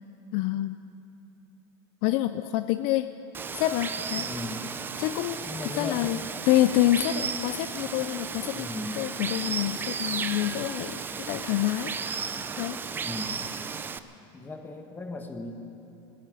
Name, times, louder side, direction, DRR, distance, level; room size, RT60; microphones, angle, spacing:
voice 1, 0.3-0.8 2.0-3.1 3.5-4.3 5.0-6.2 6.5-8.7 8.9-11.0 11.3-11.9 12.6-12.8, left 14 dB, 50° left, 11 dB, 0.4 m, -27 dB
Water, 3.3-14.0, right 5 dB, 15° right, 0.5 m, -34 dB
voice 2, 4.1-4.7 5.5-6.4 8.5-9.1 12.9-13.4 14.3-15.5, left 2 dB, 15° left, 5 dB, 1.3 m, -37 dB
17.5 x 10.0 x 8.0 m, 2.8 s
supercardioid pair, 145°, 14 cm